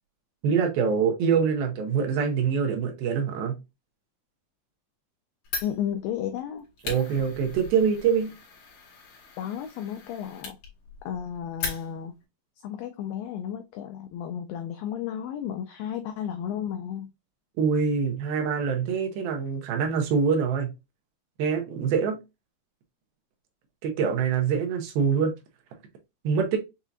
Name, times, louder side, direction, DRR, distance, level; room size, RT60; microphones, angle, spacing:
voice 1, 0.4-3.6 6.8-8.3 17.6-20.7 21.4-22.2 23.8-25.3 26.2-26.6, right 6 dB, 75° right, 2.6 m, -24 dB
Fire, 5.4-12.2, left 5 dB, 50° left, 2.3 m, -39 dB
voice 2, 5.6-6.7 9.4-10.6 11.1-12.1 12.6-17.1, left 9 dB, 85° left, 2.0 m, -33 dB
6.8 x 2.8 x 2.4 m
omnidirectional pair, 4.6 m